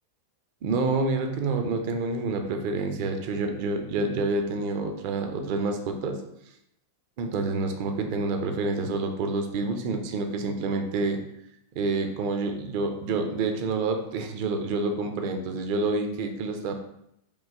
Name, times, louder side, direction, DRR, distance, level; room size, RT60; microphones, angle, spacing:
voice 1, 0.6-6.2 7.2-11.2 11.7-16.7, right 3 dB, 45° right, 5 dB, 0.7 m, -28 dB
5.2 x 2.9 x 3.5 m, 0.76 s
figure-of-eight pair, 90°, 0 cm